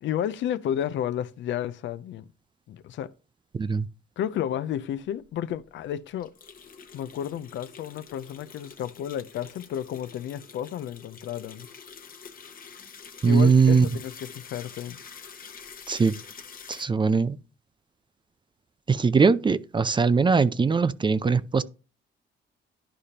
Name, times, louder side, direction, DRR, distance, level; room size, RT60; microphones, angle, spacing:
voice 1, 0.0-2.3 2.7-3.1 4.2-6.3 6.9-11.7 13.2-15.0, left 10 dB, 70° left, 0.5 m, -32 dB
voice 2, 3.5-3.9 13.2-13.9 15.9-16.1 16.7-17.4 18.9-21.6, right 5 dB, 25° right, 0.4 m, -21 dB
sound 1, 5.2-5.3 5.5-5.6 6.2-16.9, left 6 dB, 45° left, 1.0 m, -46 dB
11.5 x 5.0 x 2.8 m
cardioid pair, 90°, 20 cm